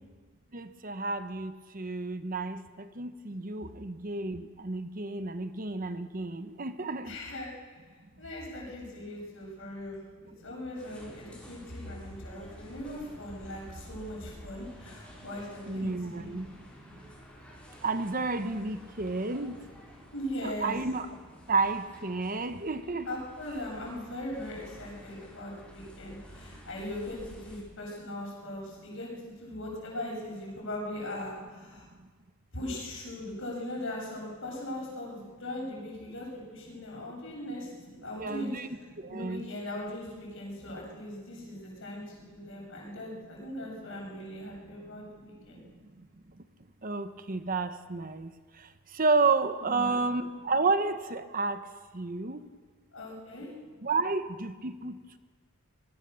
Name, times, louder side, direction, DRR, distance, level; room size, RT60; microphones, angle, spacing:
voice 1, 0.5-7.2 15.7-16.6 17.8-19.6 20.4-21.1 21.5-23.2 38.2-38.7 39.0-39.4 42.6-42.7 46.0-46.1 46.8-51.7 51.9-52.5 53.4-53.5 53.8-55.2, right 3 dB, 40° right, 10 dB, 1.0 m, -31 dB
voice 2, 7.0-7.5 8.2-16.4 20.1-20.8 23.1-31.9 32.5-38.5 39.1-45.7 49.6-50.1 52.9-53.5, left 1 dB, 60° left, -2 dB, 7.6 m, -39 dB
sound 1, 10.7-27.6, equal, 5° left, 6.4 m, -51 dB
24.5 x 20.0 x 6.9 m, 1.5 s
head